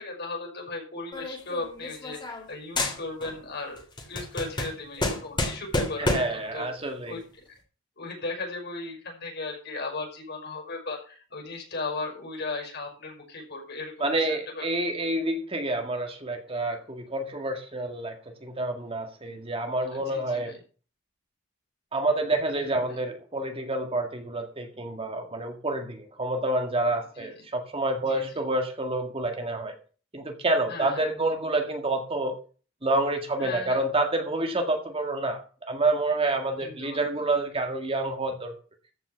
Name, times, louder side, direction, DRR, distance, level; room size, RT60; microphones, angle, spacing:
voice 1, 0.0-6.2 6.5-6.7 7.1-7.2 7.5-7.6 8.0-14.6 19.9-20.6 22.6-23.0 27.2-27.3 28.0-28.4 30.7-31.0 33.4-33.8 36.6-37.3, left 3 dB, 55° left, 2 dB, 5.9 m, -37 dB
sound 1, 1.1-2.5 2.8-3.4 3.8-6.4, left 2 dB, 25° left, 3.0 m, -30 dB
voice 2, 6.0-7.2 14.0-20.5 21.9-29.8 30.1-32.4 32.8-38.5, right 2 dB, 30° right, 4 dB, 1.9 m, -28 dB
14.0 x 6.1 x 7.1 m, 0.39 s
head